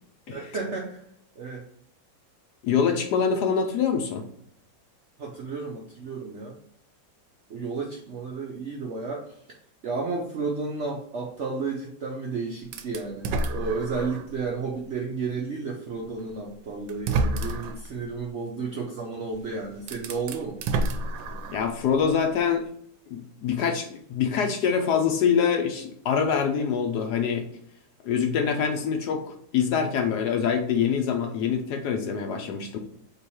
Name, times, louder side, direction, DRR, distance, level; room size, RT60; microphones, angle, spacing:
voice 1, 0.3-1.0 1.4-1.7 3.3-3.4 5.2-6.6 7.5-9.4 9.8-20.6, right 4 dB, 65° right, -1 dB, 0.7 m, -32 dB
voice 2, 2.6-4.3 21.5-22.7 23.1-27.5 28.0-32.8, left 7 dB, 70° left, 5 dB, 1.1 m, -25 dB
sound 1, 12.7-14.3 14.9-15.0 16.2-16.3 16.9-17.9 19.3-19.4 19.8-21.8, right 2 dB, 85° right, 1.3 m, -29 dB
3.8 x 2.9 x 4.2 m, 0.68 s
omnidirectional pair, 2.0 m